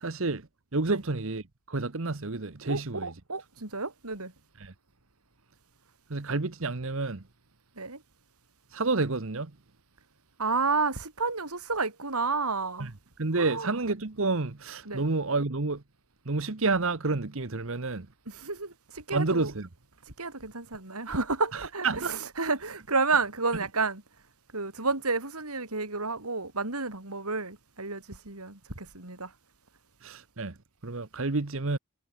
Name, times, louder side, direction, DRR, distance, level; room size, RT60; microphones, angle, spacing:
voice 1, 0.0-0.5 0.7-3.1 4.6-4.7 6.1-7.2 8.7-9.5 12.8-12.9 13.2-15.8 16.2-18.1 19.1-19.7 21.5-22.2 30.0-30.6 30.8-31.8, right 3 dB, 65° right, 1.1 m, -29 dB
voice 2, 2.7-4.3 7.8-8.0 10.4-12.9 13.4-13.7 14.8-15.1 18.3-19.5 20.1-24.0 24.5-29.3, right 4 dB, 90° right, 4.9 m, -31 dB
head